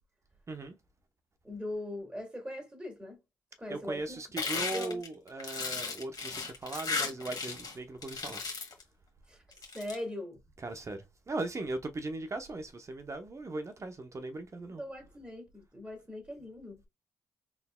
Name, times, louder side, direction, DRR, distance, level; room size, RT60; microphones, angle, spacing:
voice 1, 0.5-0.8 3.7-8.4 10.6-14.8, right 2 dB, 35° right, 0.8 m, -38 dB
voice 2, 1.4-3.2 3.6-4.2 4.7-5.0 9.3-9.4 9.7-10.4 14.8-16.8, left 1 dB, 15° right, 2.2 m, -40 dB
sound 1, 4.4-7.7 8.0-8.8 9.5-9.9, left 4 dB, 50° left, 1.7 m, -35 dB
3.9 x 3.4 x 2.2 m
supercardioid pair, 60°, 8 cm